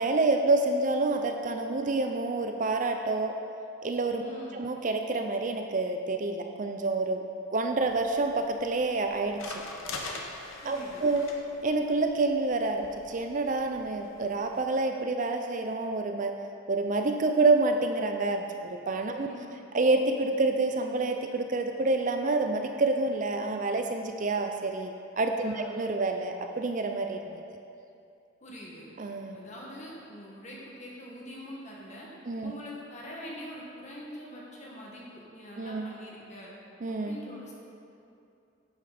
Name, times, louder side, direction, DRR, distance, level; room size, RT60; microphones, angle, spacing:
voice 1, 0.0-3.3 3.8-4.2 4.5-7.2 7.5-9.4 10.7-11.2 11.6-16.4 16.7-19.3 19.7-27.2 29.0-29.4 32.3-32.5 35.6-35.9 36.8-37.2, right 3 dB, 40° right, 5 dB, 0.4 m, -28 dB
voice 2, 4.2-4.6 10.6-11.0 19.3-19.4 25.4-25.7 28.4-28.9 29.3-32.1 32.4-36.5 37.0-37.5, equal, 35° left, -4 dB, 1.8 m, -44 dB
sound 1, 7.8-14.6, left 3 dB, 75° left, 1.1 m, -44 dB
11.0 x 8.4 x 4.2 m, 2.6 s
head